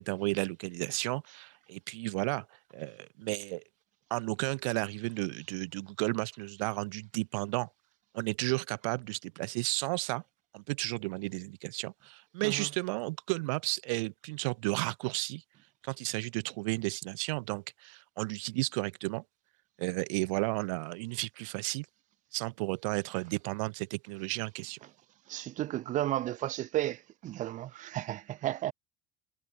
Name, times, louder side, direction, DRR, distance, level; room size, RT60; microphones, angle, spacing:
voice 1, 0.0-2.5 2.7-3.6 4.1-7.7 8.1-10.2 10.5-15.4 15.8-19.2 19.8-21.9 22.3-24.8, right 27 dB, 75° right, 5.9 m, -33 dB
voice 2, 25.3-28.7, right 14 dB, 50° right, 2.6 m, -33 dB
supercardioid pair, 110°, 17 cm